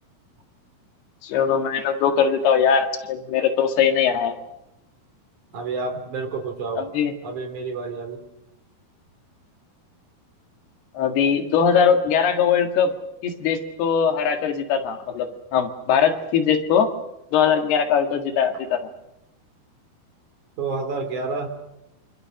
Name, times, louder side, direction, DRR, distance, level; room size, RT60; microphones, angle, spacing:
voice 1, 1.2-4.4 6.8-7.1 11.0-12.9 13.2-16.9 17.3-18.8, left 7 dB, 75° left, 6 dB, 3.9 m, -21 dB
voice 2, 5.5-6.9 7.2-8.2 20.6-21.5, right 4 dB, 50° right, 7 dB, 4.0 m, -29 dB
26.0 x 25.5 x 6.4 m, 0.88 s
omnidirectional pair, 4.7 m